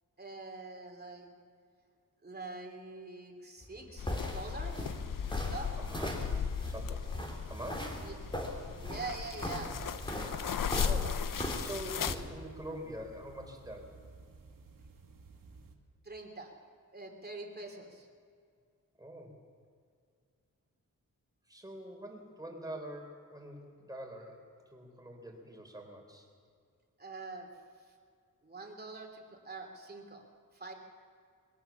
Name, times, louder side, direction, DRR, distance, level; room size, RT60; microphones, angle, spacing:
voice 1, 0.2-1.3 2.2-4.1 4.3-4.9 5.3-5.7 8.0-8.2 8.8-9.8 16.0-16.5 16.9-18.1 27.0-27.5 28.4-30.2 30.5-30.7, right 3 dB, 30° right, 2 dB, 3.0 m, -44 dB
sound 1, 3.6-12.2, left 1 dB, 15° left, 3.2 m, -39 dB
sound 2, 4.0-12.2, left 7 dB, 70° left, 0.8 m, -37 dB
voice 2, 5.8-6.1 6.7-7.2 7.5-8.1 10.7-13.9 19.0-19.4 21.5-24.5 24.7-26.3, equal, 10° right, 2 dB, 3.8 m, -45 dB
sound 3, 7.2-15.8, right 4 dB, 75° right, 2.0 m, -55 dB
21.5 x 18.0 x 7.1 m, 2.2 s
wide cardioid pair, 120°, 34 cm